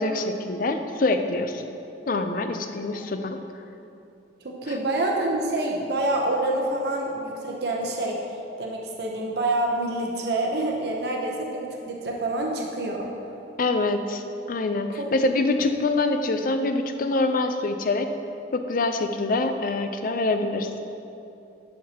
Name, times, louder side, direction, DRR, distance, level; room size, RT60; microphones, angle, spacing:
voice 1, 0.0-1.6 2.1-3.4 13.6-14.2 14.5-18.1 18.5-20.8, left 2 dB, 50° left, 7 dB, 0.5 m, -25 dB
voice 2, 4.4-8.2 8.6-13.1 15.0-15.1 15.6-15.7, right 2 dB, 65° right, -1 dB, 0.8 m, -27 dB
11.0 x 6.5 x 2.9 m, 2.8 s
head